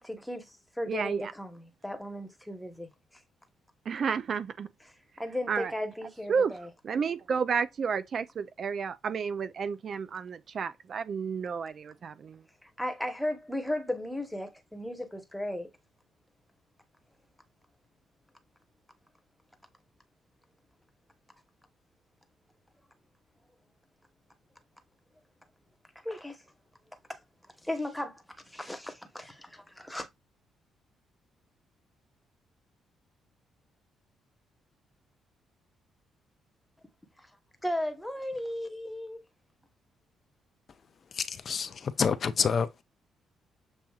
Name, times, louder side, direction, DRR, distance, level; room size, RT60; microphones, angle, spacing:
voice 1, 0.0-2.9 5.2-6.7 12.6-15.7 26.0-26.4 27.1-27.2 27.6-30.1 37.6-39.2, left 1 dB, 5° left, 1.0 m, -35 dB
voice 2, 0.9-1.3 3.9-4.7 5.5-5.7 6.3-6.6 6.8-12.4, right 6 dB, 50° right, 0.4 m, -31 dB
voice 3, 41.1-42.8, left 6 dB, 50° left, 0.4 m, -28 dB
7.0 x 2.7 x 2.3 m
cardioid pair, 90°, 0 cm